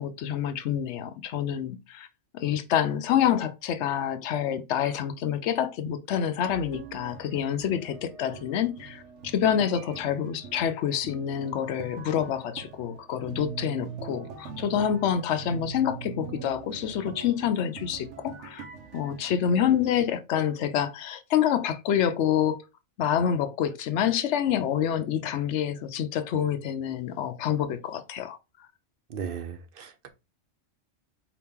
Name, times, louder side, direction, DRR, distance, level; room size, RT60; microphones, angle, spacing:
voice 1, 0.0-2.1 2.3-18.6 18.9-22.6 23.0-28.4, left 9 dB, 80° left, 0.9 m, -27 dB
sound 1, 6.5-20.1, right 6 dB, 80° right, 1.1 m, -43 dB
voice 2, 29.1-30.1, right 7 dB, 60° right, 0.8 m, -36 dB
4.5 x 2.9 x 3.5 m
omnidirectional pair, 1.2 m